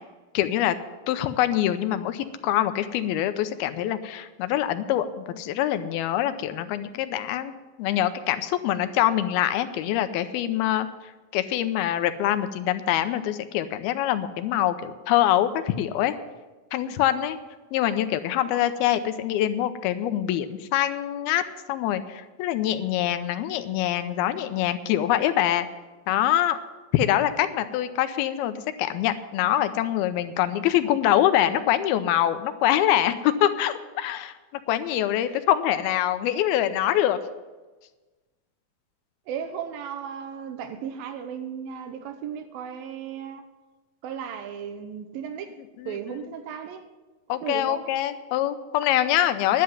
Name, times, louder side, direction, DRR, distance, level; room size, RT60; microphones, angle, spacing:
voice 1, 0.3-0.8 1.1-7.5 7.8-10.9 11.3-16.1 16.7-17.4 17.7-21.4 21.7-25.7 26.1-26.6 26.9-34.3 34.7-37.2 45.8-46.0 47.3-49.6, left 12 dB, 85° left, 2.6 m, -24 dB
voice 2, 39.3-43.5 44.0-45.6 45.9-46.9 47.3-47.9, right 8 dB, 80° right, 2.6 m, -35 dB
11.5 x 7.7 x 9.4 m
omnidirectional pair, 4.3 m